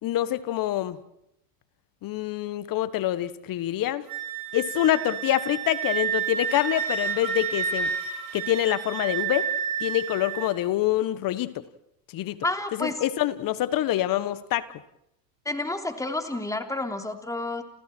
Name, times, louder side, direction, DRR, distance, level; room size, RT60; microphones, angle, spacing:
voice 1, 0.0-1.0 2.0-4.0 4.5-7.9 8.3-9.5 9.8-11.5 12.1-12.4 12.8-14.7, left 13 dB, 45° left, 15 dB, 1.4 m, -26 dB
Wind instrument woodwind instrument, 4.1-10.5, right 7 dB, 45° right, 4.1 m, -30 dB
voice 2, 12.4-13.0 15.4-17.6, left 2 dB, 5° left, 5 dB, 3.3 m, -30 dB
29.5 x 29.0 x 4.6 m, 0.78 s
supercardioid pair, 110°, 48 cm